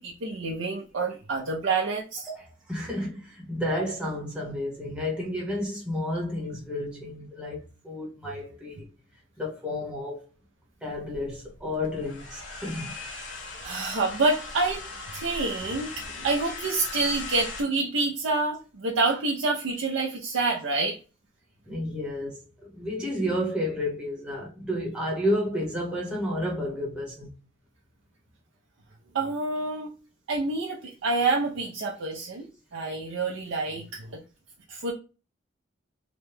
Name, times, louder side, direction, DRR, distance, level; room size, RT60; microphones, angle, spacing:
voice 1, 0.0-2.3 13.6-14.9 15.1-21.0 29.1-29.9 30.3-34.2 34.7-34.9, right 3 dB, 85° right, 0.5 m, -27 dB
voice 2, 2.3-8.9 9.4-10.3 10.8-12.9 21.7-22.4 22.7-27.3, left 1 dB, 5° right, 0.9 m, -31 dB
sound 1, 10.9-17.6, left 3 dB, 75° left, 1.0 m, -39 dB
2.9 x 2.2 x 3.2 m
head